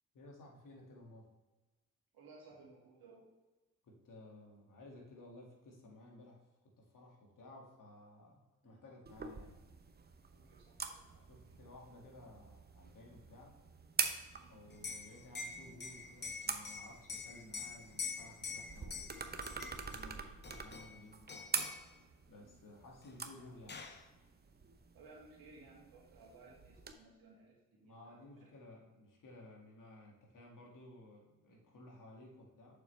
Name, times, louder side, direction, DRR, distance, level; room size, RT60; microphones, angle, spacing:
voice 1, 0.1-1.3 3.8-9.6 11.3-13.6 14.5-19.2 19.8-21.5 22.3-23.9 27.8-32.8, left 1 dB, 55° left, -1 dB, 2.0 m, -56 dB
voice 2, 2.1-3.2 8.6-8.8 10.3-11.3 14.3-14.6 19.9-20.1 22.4-22.6 24.9-28.5 31.6-31.7, right 3 dB, 65° right, -3 dB, 2.3 m, -60 dB
sound 1, 9.1-26.9, right 5 dB, 25° right, 0.8 m, -45 dB
Liquid, 14.7-20.0 20.4-21.0 21.3-21.9 23.0-23.1 23.4-24.0, left 5 dB, 30° left, 0.9 m, -45 dB
6.8 x 5.9 x 3.2 m, 1.2 s
hypercardioid pair, 45°, 38 cm